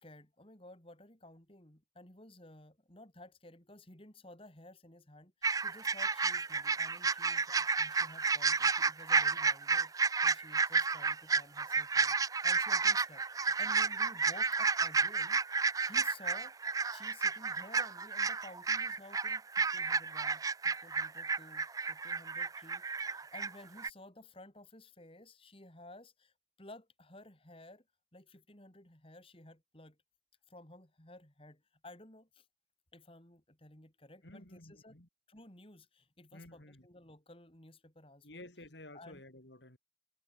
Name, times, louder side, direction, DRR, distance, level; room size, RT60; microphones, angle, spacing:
voice 1, 0.0-27.8 28.1-30.0 30.5-32.5 32.9-35.0 35.3-38.5 38.9-39.2, left 1 dB, 30° left, 3.8 m, -55 dB
sound 1, 5.4-23.5 23.8-23.9, right 4 dB, 20° right, 0.4 m, -31 dB
voice 2, 34.2-35.1 36.3-36.9 38.2-39.8, left 1 dB, 70° left, 4.6 m, -52 dB
head